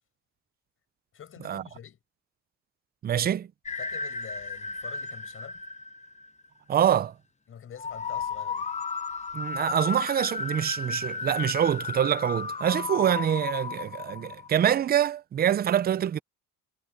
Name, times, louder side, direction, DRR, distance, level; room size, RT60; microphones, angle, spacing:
voice 1, 1.1-2.0 3.8-5.6 7.5-8.7, left 8 dB, 40° left, 5.4 m, -46 dB
voice 2, 3.0-3.5 6.7-7.1 9.3-16.2, right 10 dB, 30° right, 0.5 m, -25 dB
sound 1, 3.7-6.5 7.8-14.9, left 5 dB, 20° left, 0.9 m, -34 dB
cardioid pair, 140°, 32 cm